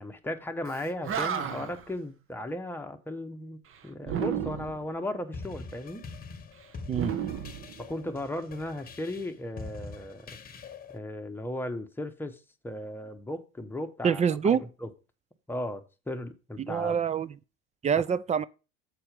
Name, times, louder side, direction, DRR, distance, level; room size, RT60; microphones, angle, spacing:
voice 1, 0.0-6.1 7.8-10.4 10.9-14.9 15.5-17.0, left 1 dB, 5° left, 1.0 m, -36 dB
Animal, 0.7-0.8 1.0-1.9 4.0-4.9 6.9-8.2, right 8 dB, 45° right, 1.1 m, -32 dB
sound 1, 5.3-11.0, left 4 dB, 30° left, 1.1 m, -44 dB
voice 2, 14.0-14.6 16.6-17.3 17.8-18.4, right 7 dB, 20° right, 0.4 m, -26 dB
7.6 x 4.4 x 5.1 m
hypercardioid pair, 85°, 31 cm